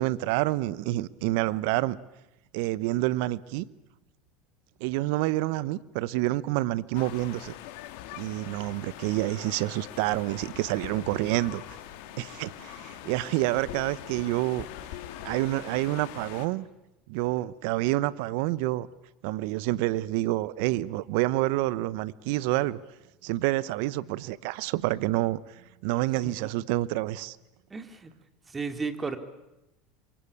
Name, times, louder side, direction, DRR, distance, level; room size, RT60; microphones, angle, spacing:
voice 1, 0.0-2.0 2.5-3.7 4.8-7.5 8.2-11.8 12.2-14.7 15.2-16.7 17.1-18.9 19.2-22.8 23.2-27.4, right 17 dB, 70° right, 1.0 m, -28 dB
sound 1, 6.9-16.5, left 13 dB, 70° left, 2.3 m, -43 dB
voice 2, 27.7-28.1 28.5-29.2, right 4 dB, 20° right, 3.1 m, -33 dB
28.0 x 23.5 x 8.7 m
hypercardioid pair, 85°, 0 cm